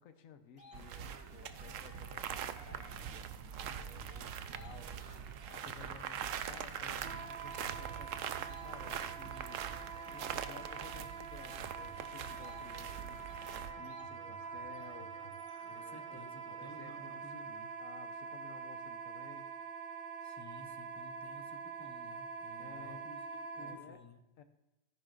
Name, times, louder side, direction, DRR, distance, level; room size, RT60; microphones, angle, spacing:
voice 1, 0.0-17.4 17.8-19.5 22.6-23.0 23.6-24.0 24.4-24.5, left 7 dB, 90° left, 7 dB, 1.2 m, -56 dB
sound 1, 0.6-16.3, left 1 dB, 50° left, 3.6 m, -57 dB
sound 2, 0.7-13.7, right 9 dB, 80° right, 1.0 m, -43 dB
Wind instrument woodwind instrument, 7.0-23.8, right 6 dB, 50° right, 0.9 m, -45 dB
voice 2, 15.7-17.7 20.2-24.2, left 2 dB, 20° left, 6 dB, 0.5 m, -54 dB
13.5 x 10.5 x 2.5 m, 0.96 s
omnidirectional pair, 1.4 m